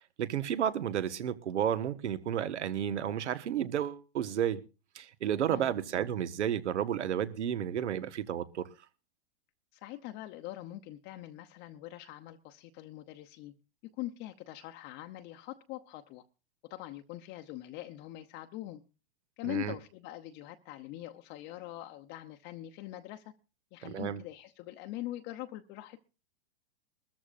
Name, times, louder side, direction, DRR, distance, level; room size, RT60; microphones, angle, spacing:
voice 1, 0.2-4.6 4.9-8.7 19.4-19.7 23.8-24.2, right 9 dB, 90° right, 13 dB, 1.3 m, -32 dB
voice 2, 9.7-13.5 14.0-16.2 16.7-18.8 19.4-23.3 23.7-26.0, left 15 dB, 35° left, 6 dB, 0.8 m, -43 dB
22.0 x 13.5 x 2.5 m, 0.33 s
hypercardioid pair, 140°, 34 cm